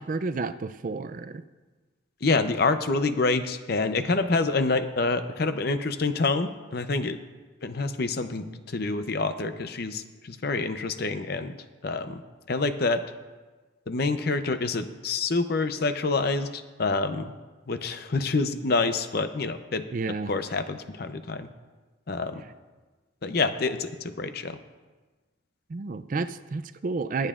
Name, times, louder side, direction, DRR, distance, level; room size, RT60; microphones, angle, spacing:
voice 1, 0.0-1.4 19.9-20.3 25.7-27.3, right 4 dB, 40° right, 12 dB, 0.4 m, -31 dB
voice 2, 2.2-7.2 7.6-11.5 11.8-12.2 12.5-13.0 13.9-17.3 17.7-19.8 20.3-21.5 22.1-22.4 23.2-24.6, left 3 dB, 50° left, 9 dB, 0.6 m, -27 dB
25.0 x 8.9 x 2.5 m, 1.3 s
head